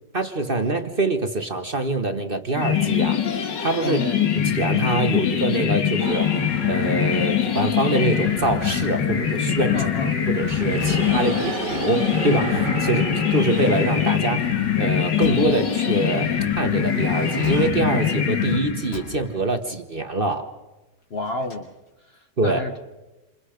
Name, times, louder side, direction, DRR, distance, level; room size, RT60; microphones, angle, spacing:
voice 1, 0.1-4.0 4.5-6.3 6.6-9.9 10.3-13.0 13.3-14.5 14.8-20.5 22.4-22.6, right 2 dB, 35° right, 7 dB, 1.2 m, -24 dB
sound 1, 2.6-19.1, left 8 dB, 85° left, 2.3 m, -23 dB
voice 2, 3.8-4.2 9.7-10.1 10.9-11.5 12.9-13.0 21.1-21.7 22.0-22.8, left 3 dB, 40° left, 6 dB, 1.0 m, -31 dB
sound 2, 6.0-8.5 9.0-15.5 16.6-17.7, right 7 dB, 70° right, 1.7 m, -35 dB
sound 3, 8.7-11.8 15.2-15.9 17.4-18.3 18.9-19.8 21.0-21.9, left 3 dB, 65° left, 5.1 m, -41 dB
28.5 x 27.5 x 5.1 m, 1.1 s
omnidirectional pair, 1.9 m